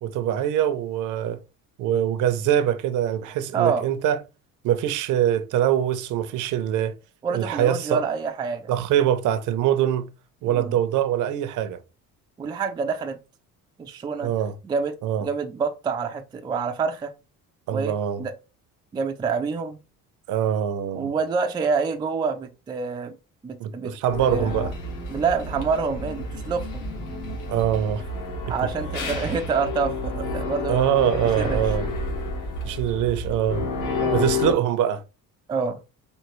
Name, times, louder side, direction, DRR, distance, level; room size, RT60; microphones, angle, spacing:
voice 1, 0.0-1.4 1.8-4.2 4.6-6.9 7.3-8.1 8.7-10.1 10.4-11.8 14.2-14.5 15.0-15.3 17.7-18.2 20.3-21.1 23.6-24.7 27.5-28.0 28.6-28.7 30.7-31.9 32.6-33.6 34.1-35.0, right 10 dB, 65° right, 0.6 m, -23 dB
voice 2, 3.5-3.8 7.2-8.7 10.5-10.7 12.4-13.2 13.8-14.3 14.6-15.0 15.2-17.1 17.7-18.3 18.9-19.8 20.9-23.2 23.4-23.9 24.2-24.5 25.1-26.8 28.5-30.8 31.4-31.9 34.0-34.3 35.5-35.8, right 5 dB, 15° right, 0.3 m, -27 dB
sound 1, 24.1-34.5, left 2 dB, 65° left, 1.6 m, -30 dB
4.4 x 2.8 x 3.0 m
cardioid pair, 175°, 33 cm